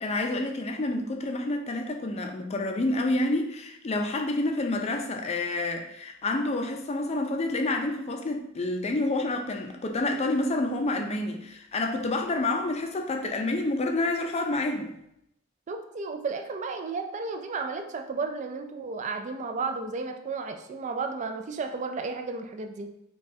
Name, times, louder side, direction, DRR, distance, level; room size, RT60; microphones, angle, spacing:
voice 1, 0.0-14.9, left 2 dB, 30° left, 4 dB, 0.4 m, -28 dB
voice 2, 15.7-22.9, right 4 dB, 35° right, 6 dB, 0.3 m, -33 dB
5.2 x 2.3 x 2.7 m, 0.80 s
head